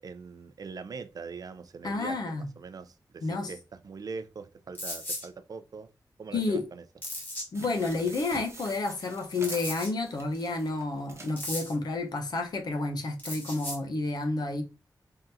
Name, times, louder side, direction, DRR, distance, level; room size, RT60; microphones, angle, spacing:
voice 1, 0.0-5.9 6.2-6.8, right 5 dB, 60° right, 0.5 m, -42 dB
voice 2, 1.8-2.5 3.2-3.5 6.3-6.7 7.5-14.6, left 3 dB, 70° left, 0.9 m, -30 dB
sound 1, 4.7-5.3 7.0-7.4 9.4-9.9 11.4-11.7 13.2-13.8, left 1 dB, 25° left, 1.8 m, -36 dB
sound 2, 7.5-11.4 12.0-12.1 12.3-12.4, right 2 dB, 40° right, 1.0 m, -47 dB
3.8 x 3.5 x 2.7 m
wide cardioid pair, 110°, 7 cm